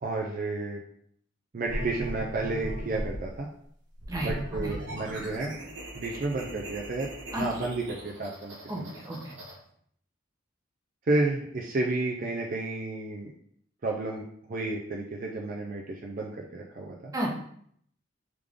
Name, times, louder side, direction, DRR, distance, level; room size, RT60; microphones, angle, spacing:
voice 1, 0.0-0.8 1.5-3.5 4.2-5.5 5.9-9.0 11.1-13.3 13.8-14.2 14.5-17.1, right 2 dB, 45° right, -1 dB, 0.5 m, -31 dB
sound 1, 1.7-3.3 4.0-9.5, equal, 60° right, 1.2 m, -38 dB
voice 2, 8.7-9.3 17.1-17.3, right 1 dB, 20° right, -2 dB, 0.8 m, -32 dB
3.7 x 3.3 x 3.5 m, 0.66 s
head